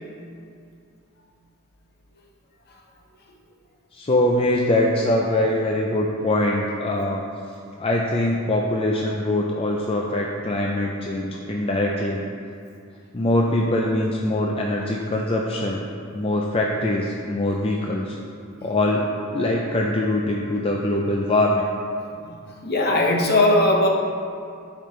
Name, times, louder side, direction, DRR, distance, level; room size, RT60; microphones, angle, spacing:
voice 1, 3.9-7.2 7.8-12.3 13.1-15.8 16.1-18.2 18.6-19.1 19.3-21.7, left 1 dB, 25° left, -1 dB, 0.5 m, -23 dB
voice 2, 22.2-23.9, left 1 dB, 50° left, 0 dB, 1.0 m, -19 dB
13.0 x 5.2 x 3.2 m, 2.4 s
head